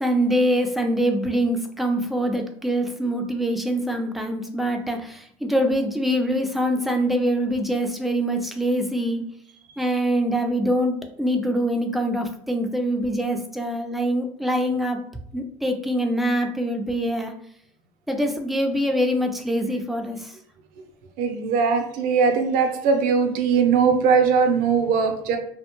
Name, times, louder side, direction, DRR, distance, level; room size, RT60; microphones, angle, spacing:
voice 1, 0.0-9.4 9.8-15.0 15.3-17.3 18.1-20.3, equal, ahead, 4 dB, 0.4 m, -24 dB
voice 2, 21.2-25.4, right 5 dB, 65° right, 5 dB, 0.6 m, -20 dB
2.4 x 2.1 x 2.9 m, 0.66 s
supercardioid pair, 80°, 15 cm